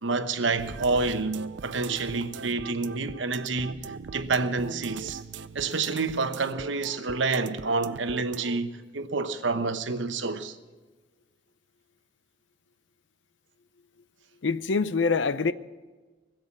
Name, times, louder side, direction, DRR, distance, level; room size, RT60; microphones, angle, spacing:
voice 1, 0.0-5.2 5.5-10.6, right 3 dB, 85° right, 1.0 m, -28 dB
sound 1, 0.6-8.6, right 5 dB, 70° right, 0.5 m, -40 dB
voice 2, 14.4-15.5, left 4 dB, 75° left, 0.6 m, -25 dB
20.0 x 7.7 x 8.7 m
head